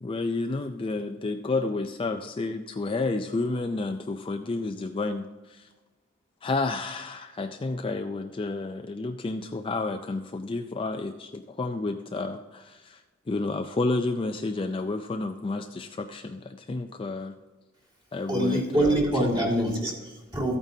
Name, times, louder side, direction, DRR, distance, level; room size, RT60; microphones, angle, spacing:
voice 1, 0.0-5.3 5.5-5.6 6.4-13.0 13.3-17.3 18.1-19.0 19.2-19.5, left 3 dB, 25° left, 6 dB, 0.4 m, -30 dB
voice 2, 18.3-20.6, right 1 dB, 20° right, -2 dB, 2.0 m, -25 dB
13.5 x 8.9 x 2.7 m, 1.2 s
head